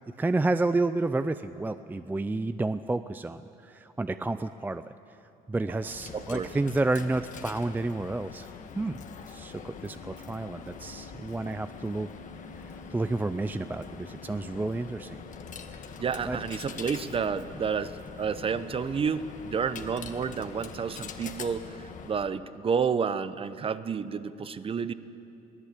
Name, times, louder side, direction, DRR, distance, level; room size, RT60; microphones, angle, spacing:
voice 1, 0.2-4.8 5.5-8.5 8.8-9.0 9.3-12.1 12.9-15.2 16.2-16.4, right 2 dB, 10° right, 11 dB, 0.5 m, -30 dB
Coin (dropping), 5.7-22.4, left 6 dB, 50° left, 1.5 m, -44 dB
voice 2, 6.1-6.5 11.5-11.6 16.0-24.9, right 6 dB, 35° right, 14 dB, 0.8 m, -30 dB
23.0 x 16.5 x 8.3 m, 2.7 s
cardioid pair, 110°, 17 cm